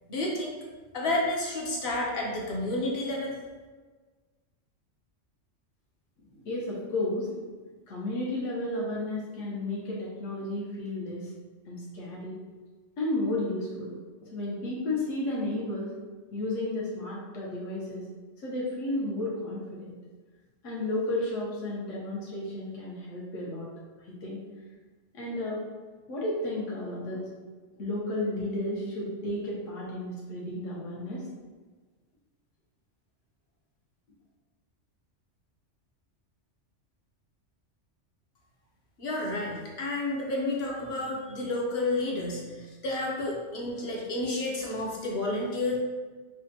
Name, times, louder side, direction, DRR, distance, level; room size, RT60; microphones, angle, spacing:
voice 1, 0.1-0.5 0.9-3.4 39.0-45.8, left 2 dB, 60° left, -3 dB, 0.9 m, -30 dB
voice 2, 6.4-7.4 7.9-11.3 11.7-12.4 13.0-13.9 14.3-15.9 16.3-18.0 18.4-20.0 20.6-23.7 24.1-24.4 25.1-25.6 26.1-27.2 27.8-31.2, left 1 dB, 80° left, -5 dB, 1.2 m, -32 dB
5.0 x 2.2 x 2.8 m, 1.4 s
omnidirectional pair, 1.3 m